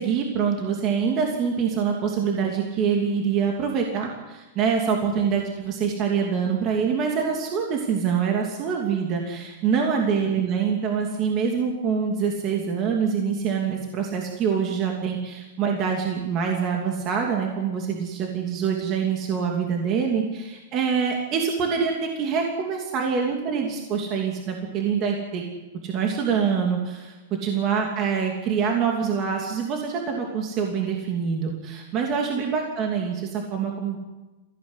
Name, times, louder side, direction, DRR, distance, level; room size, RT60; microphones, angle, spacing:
voice 1, 0.0-25.4 25.8-27.1 27.4-34.0, right 6 dB, 25° right, 1 dB, 2.7 m, -25 dB
24.0 x 16.0 x 9.8 m, 1.1 s
supercardioid pair, 170°, 0 cm